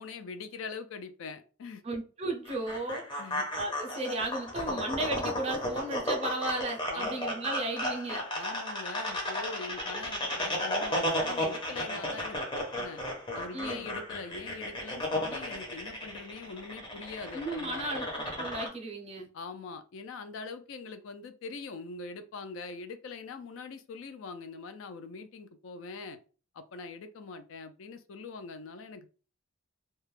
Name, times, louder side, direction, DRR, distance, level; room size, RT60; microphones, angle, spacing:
voice 1, 0.0-1.8 3.2-3.5 4.7-4.8 6.9-7.2 8.4-13.0 13.3-17.9 19.3-26.2 26.5-29.2, left 4 dB, 65° left, 10 dB, 0.3 m, -43 dB
voice 2, 1.8-3.1 3.5-8.3 13.5-13.9 17.3-19.3, right 2 dB, 30° right, 2 dB, 0.5 m, -35 dB
sound 1, 2.5-18.7, left 1 dB, 20° left, 0.6 m, -34 dB
2.2 x 2.0 x 3.1 m, 0.37 s
head